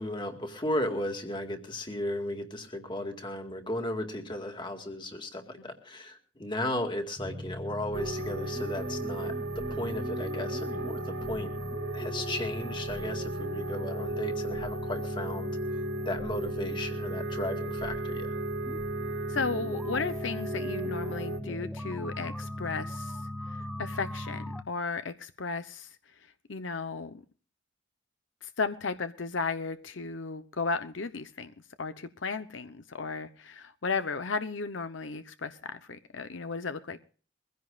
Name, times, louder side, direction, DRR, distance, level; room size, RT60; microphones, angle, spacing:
voice 1, 0.0-11.5 11.9-15.5 16.0-18.3, left 1 dB, 25° left, 5 dB, 2.1 m, -35 dB
sound 1, 7.2-24.6, left 1 dB, ahead, 0.8 m, -38 dB
sound 2, 7.9-21.4, right 2 dB, 85° right, 2.2 m, -36 dB
voice 2, 19.3-23.2 23.8-25.9 26.5-27.2 28.4-37.0, left 4 dB, 75° left, 11 dB, 0.9 m, -34 dB
23.0 x 16.0 x 2.5 m, 0.40 s
head